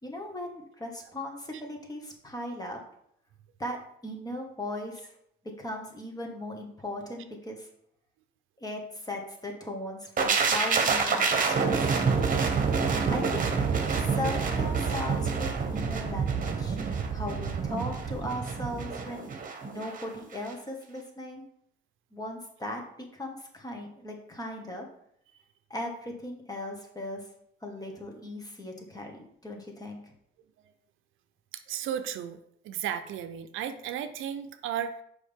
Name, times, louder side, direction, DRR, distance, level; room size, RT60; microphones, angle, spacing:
voice 1, 0.0-2.8 3.6-3.8 4.0-5.1 5.6-7.7 8.6-11.8 12.7-13.7 14.0-16.8 17.1-19.2 19.6-21.4 22.1-22.8 23.1-24.9 25.7-27.2 27.6-30.0, left 1 dB, 20° left, 1 dB, 1.7 m, -38 dB
sound 1, 10.2-20.0 20.3-20.5, right 5 dB, 45° right, 1.1 m, -27 dB
voice 2, 31.5-32.4 32.6-35.0, right 9 dB, 85° right, 9 dB, 0.6 m, -34 dB
6.3 x 5.2 x 3.6 m, 0.71 s
cardioid pair, 90°, 20 cm